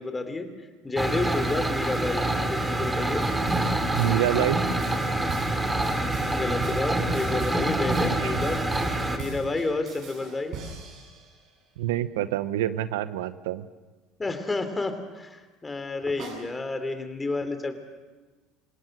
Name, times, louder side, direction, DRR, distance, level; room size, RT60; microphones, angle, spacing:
voice 1, 0.0-3.3 6.3-8.6 9.1-10.6 14.2-17.7, left 3 dB, 20° left, 8 dB, 3.1 m, -30 dB
sound 1, 1.0-9.2, right 1 dB, 15° right, 2.9 m, -26 dB
sound 2, 3.2-11.4 16.2-16.3, right 4 dB, 60° right, 7.7 m, -38 dB
voice 2, 4.0-4.6 8.2-8.3 11.8-13.6, right 13 dB, 85° right, 14 dB, 0.8 m, -26 dB
28.0 x 17.5 x 6.6 m, 1.2 s
supercardioid pair, 85°, 0 cm